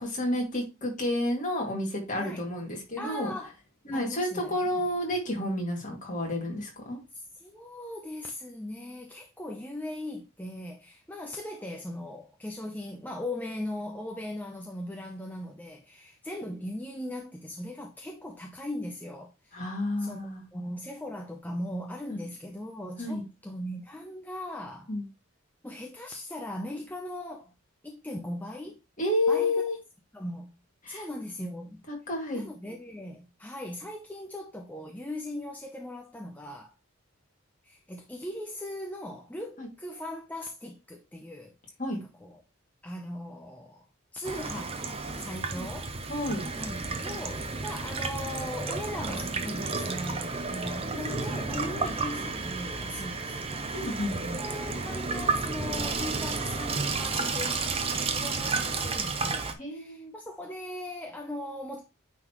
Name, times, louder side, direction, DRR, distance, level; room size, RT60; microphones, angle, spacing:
voice 1, 0.0-3.3 3.9-7.0 19.5-20.4 22.1-22.2 23.0-23.2 24.9-25.0 29.0-29.8 30.8-31.0 32.1-32.5 39.6-39.7 41.8-42.0 45.5-45.7 46.1-46.5 53.7-54.4 59.6-60.1, left 1 dB, 35° left, 2.2 m, -30 dB
voice 2, 2.1-2.5 3.0-3.5 3.9-4.9 7.1-19.6 20.0-20.2 20.5-24.9 25.6-27.5 27.8-28.8 29.3-29.6 30.1-30.5 30.9-31.8 32.3-36.7 37.6-41.5 41.9-42.4 42.8-43.9 44.1-46.0 46.6-53.7 54.3-61.8, left 1 dB, 10° left, 0.6 m, -39 dB
Water tap faucet / Sink (filling or washing), 44.2-59.5, right 4 dB, 25° right, 0.7 m, -32 dB
9.1 x 4.0 x 3.0 m
head